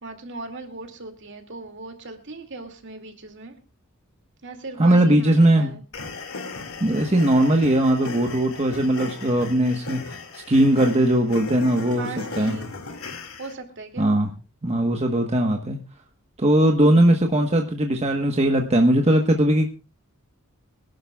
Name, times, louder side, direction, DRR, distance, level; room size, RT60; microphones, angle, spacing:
voice 1, 0.0-3.6 4.4-5.8 12.0-12.8 13.4-14.1, right 3 dB, 55° right, 2.5 m, -38 dB
voice 2, 4.8-5.7 6.8-10.2 10.5-12.1 12.4-12.6 14.0-14.3 14.6-15.8 16.4-19.7, right 1 dB, 30° right, 1.2 m, -19 dB
sound 1, 5.9-13.5, left 3 dB, 70° left, 2.3 m, -37 dB
25.0 x 11.5 x 2.4 m
head